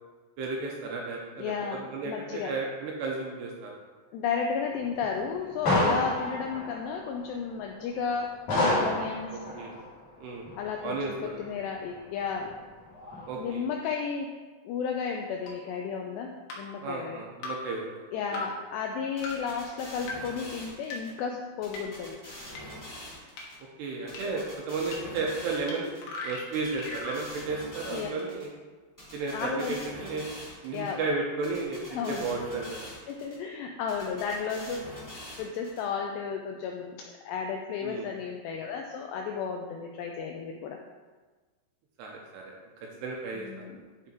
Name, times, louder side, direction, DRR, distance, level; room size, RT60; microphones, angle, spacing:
voice 1, 0.4-3.7 5.8-6.0 9.5-9.7 10.2-10.4 10.8-11.3 13.3-13.6 16.8-17.9 18.3-18.4 23.8-25.9 26.2-28.5 29.1-30.3 30.6-32.9 37.8-38.1 42.0-42.4 43.0-43.7, right 3 dB, 75° right, -1 dB, 2.7 m, -33 dB
voice 2, 1.4-2.5 4.1-8.4 8.7-9.3 10.6-12.5 13.4-14.3 14.6-17.2 18.1-22.2 27.9-28.1 29.3-29.7 30.7-31.0 31.9-32.3 33.1-34.9 35.4-40.8 43.3-43.8, left 6 dB, 85° left, 2 dB, 2.4 m, -33 dB
sound 1, 4.8-7.1 7.5-7.6 8.1-8.2 8.5-9.9 10.5-11.3 11.6-11.7 12.0-12.1 12.4-12.5 12.9-13.5, left 1 dB, 45° left, 2.9 m, -29 dB
sound 2, 15.5-15.6 16.5-16.6 17.4-17.5 18.3-18.4 19.2-19.3 20.1-20.2 20.9-21.0 21.7-21.8 22.6-22.7 23.4-23.5 24.1-24.2 24.9-25.0 25.7-25.8 26.0-27.2, left 3 dB, 65° left, 2.6 m, -37 dB
sound 3, 19.2-21.1 21.6-23.5 24.1-26.0 26.5-28.4 29.0-30.9 31.4-33.3 33.9-35.8, left 1 dB, 10° left, 1.2 m, -44 dB
10.0 x 5.0 x 4.4 m, 1.3 s
omnidirectional pair, 5.5 m